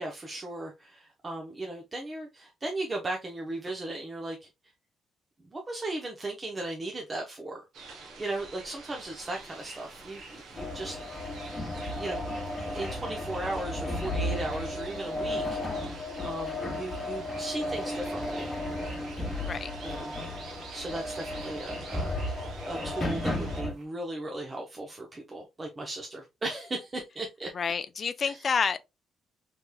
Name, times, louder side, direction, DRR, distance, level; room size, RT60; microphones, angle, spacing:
voice 1, 0.0-4.5 5.4-7.6 8.2-11.0 11.9-12.2 12.6-18.5 19.8-20.1 20.4-22.1 22.7-27.5 28.3-28.5, right 2 dB, 25° right, 0.7 m, -37 dB
sound 1, 7.7-23.6, right 3 dB, 70° right, 1.0 m, -48 dB
sound 2, 9.3-23.9, right 3 dB, 50° right, 1.5 m, -53 dB
sound 3, 10.5-23.7, left 1 dB, 20° left, 1.2 m, -34 dB
voice 2, 27.6-28.8, left 6 dB, 45° left, 0.3 m, -29 dB
3.4 x 3.0 x 2.2 m
cardioid pair, 90°, 0 cm